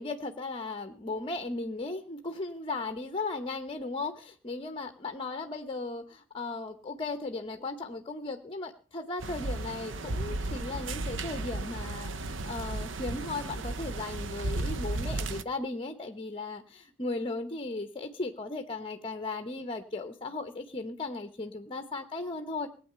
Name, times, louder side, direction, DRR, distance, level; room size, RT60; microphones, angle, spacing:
voice 1, 0.0-22.7, left 3 dB, 30° left, 9 dB, 0.9 m, -36 dB
sound 1, 9.2-15.4, right 2 dB, 70° right, 0.7 m, -34 dB
19.0 x 8.9 x 6.8 m, 0.42 s
head